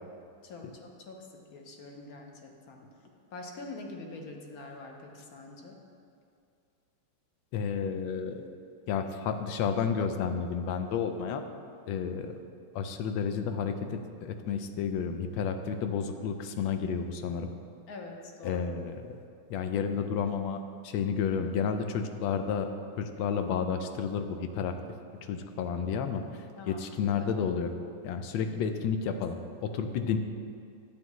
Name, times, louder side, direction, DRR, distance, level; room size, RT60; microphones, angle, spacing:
voice 1, 0.4-2.9 3.3-5.8 17.9-18.7 26.6-27.3 28.4-28.7 29.7-29.8, left 2 dB, 60° left, 2 dB, 1.1 m, -45 dB
voice 2, 7.5-8.5 8.9-11.4 11.9-12.4 12.7-17.5 18.4-19.2 19.5-22.7 23.0-24.8 25.2-27.7 28.0-30.2, left 6 dB, 75° left, 7 dB, 1.3 m, -31 dB
10.5 x 8.5 x 3.1 m, 2.4 s
omnidirectional pair, 2.3 m